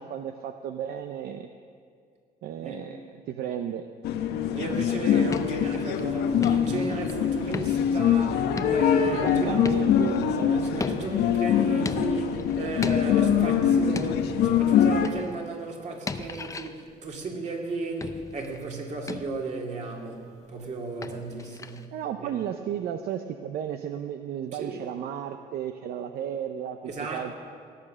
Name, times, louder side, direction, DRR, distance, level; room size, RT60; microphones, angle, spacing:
voice 1, 0.0-1.5 2.4-3.0 3.3-3.9 9.0-10.7 11.0-11.1 21.9-27.3, right 9 dB, 65° right, 7 dB, 0.6 m, -33 dB
sound 1, 4.0-15.1, left 8 dB, 75° left, 0.9 m, -24 dB
voice 2, 4.5-9.5 10.6-21.9 22.2-22.3 24.5-24.8 26.8-27.3, right 2 dB, 45° right, 1 dB, 2.4 m, -34 dB
sound 2, 5.1-6.1 6.4-7.2 7.5-8.1 8.6-10.3 10.8-11.4 11.9-12.5 12.8-13.4 14.0-14.5 15.0-15.4 16.1-16.8 18.0-18.6 19.1-19.5 21.0-21.9, left 4 dB, 20° left, 0.6 m, -36 dB
17.0 x 8.6 x 6.3 m, 2.2 s
cardioid pair, 110°, 17 cm